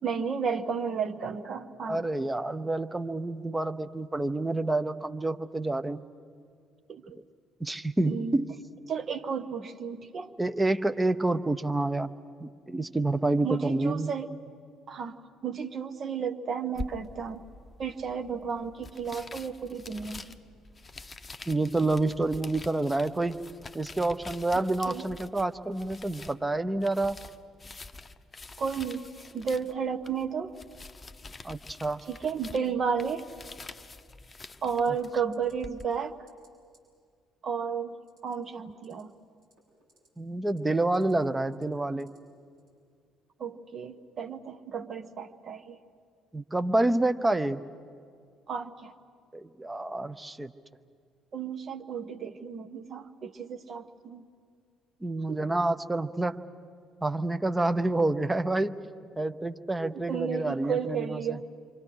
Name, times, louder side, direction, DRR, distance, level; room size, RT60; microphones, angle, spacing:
voice 1, 0.0-2.0 6.9-7.2 8.1-8.4 8.9-10.3 12.9-13.0 13.4-14.3 14.9-17.4 17.8-20.4 24.9-25.0 28.6-29.1 29.3-30.6 32.1-33.3 34.6-36.2 37.4-38.0 38.2-39.2 43.4-45.8 48.5-48.9 51.3-54.2 55.3-55.4 59.8-61.4, right 6 dB, 40° right, 8 dB, 1.2 m, -33 dB
voice 2, 1.8-6.0 7.1-7.2 7.6-8.5 10.4-12.1 12.4-14.1 21.5-23.4 23.7-27.2 31.4-32.0 38.9-39.0 40.2-42.1 46.3-47.6 49.3-50.5 55.0-56.4 57.0-58.9 59.2-61.4, right 2 dB, 15° right, 10 dB, 0.9 m, -28 dB
sound 1, 16.8-35.9, left 3 dB, 25° left, 0.9 m, -46 dB
sound 2, 34.8-35.1 35.3-35.5 35.8-36.0 36.3-36.5 36.7-36.8 38.0-38.3 38.7-39.0 39.4-40.1 40.4-41.1 41.5-42.2 42.6-42.7, right 1 dB, 60° right, 6.4 m, -62 dB
28.5 x 24.5 x 6.6 m, 2.2 s
figure-of-eight pair, 50°, 0 cm